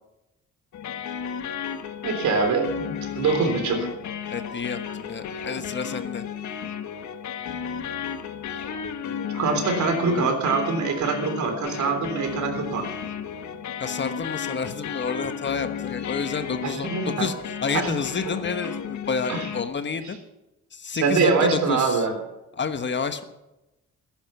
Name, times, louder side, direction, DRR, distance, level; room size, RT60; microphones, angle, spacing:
sound 1, 0.7-19.6, left 7 dB, 70° left, 1.5 m, -33 dB
voice 1, 2.0-3.9 9.3-12.8 16.6-17.3 17.7-17.9 19.3-19.5 21.0-22.1, right 4 dB, 70° right, 5 dB, 3.6 m, -24 dB
voice 2, 4.3-6.2 13.8-16.9 17.2-17.3 17.6-20.2 20.7-22.1 22.6-23.2, left 5 dB, 40° left, 10 dB, 1.2 m, -29 dB
14.0 x 10.5 x 7.0 m, 0.98 s
cardioid pair, 90°, 30 cm